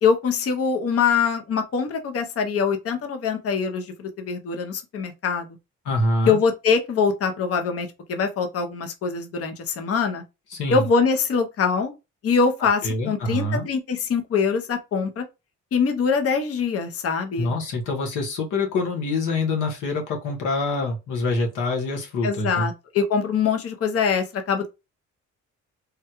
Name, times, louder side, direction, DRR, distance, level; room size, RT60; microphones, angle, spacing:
voice 1, 0.0-5.5 6.3-10.2 10.7-11.9 12.2-15.2 15.7-17.5 22.2-24.7, left 5 dB, 50° left, 0.7 m, -23 dB
voice 2, 5.8-6.4 10.5-10.9 12.8-13.7 17.4-22.7, left 2 dB, 90° left, 1.2 m, -25 dB
3.5 x 2.2 x 2.9 m
cardioid pair, 90°, 30 cm